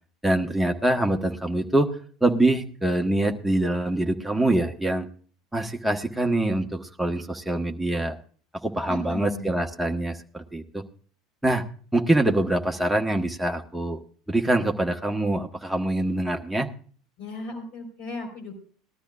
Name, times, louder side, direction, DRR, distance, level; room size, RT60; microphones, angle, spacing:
voice 1, 0.2-1.9 2.2-5.1 5.5-8.1 8.6-10.8 11.4-11.6 11.9-14.0 14.3-16.7, right 1 dB, 5° right, 2 dB, 1.3 m, -24 dB
voice 2, 8.9-9.5 17.2-18.5, left 3 dB, 50° left, 2 dB, 4.1 m, -36 dB
19.5 x 12.5 x 2.4 m, 0.43 s
figure-of-eight pair, 70°, 2 cm